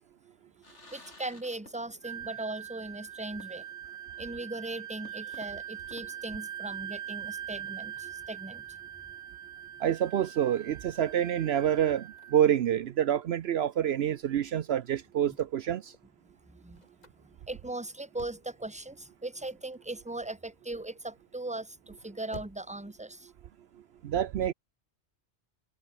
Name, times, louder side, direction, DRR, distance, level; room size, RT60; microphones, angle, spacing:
sound 1, 0.6-2.2 2.5-2.6 3.4-3.9 4.3-4.4 5.1-7.0, left 2 dB, 85° left, 4.5 m, -56 dB
voice 1, 0.9-3.6 4.2-8.8 16.5-16.8 17.5-23.3, right 2 dB, 5° right, 1.4 m, -39 dB
Wind instrument woodwind instrument, 2.0-12.4, right 10 dB, 85° right, 1.1 m, -42 dB
sound 2, 6.2-23.0, left 1 dB, 35° left, 4.1 m, -57 dB
voice 2, 9.8-15.9 24.0-24.5, right 10 dB, 65° right, 0.9 m, -27 dB
omnidirectional pair, 1.2 m